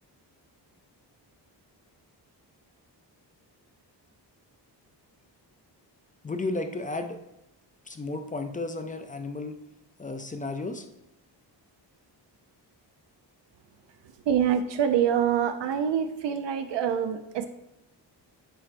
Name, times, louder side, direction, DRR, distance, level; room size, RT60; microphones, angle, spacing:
voice 1, 6.2-7.2 7.9-9.5 10.0-10.9, left 2 dB, 20° left, 7 dB, 0.3 m, -33 dB
voice 2, 14.0-17.5, right 8 dB, 75° right, 8 dB, 0.5 m, -26 dB
10.0 x 4.3 x 2.5 m, 0.89 s
wide cardioid pair, 175°, 44 cm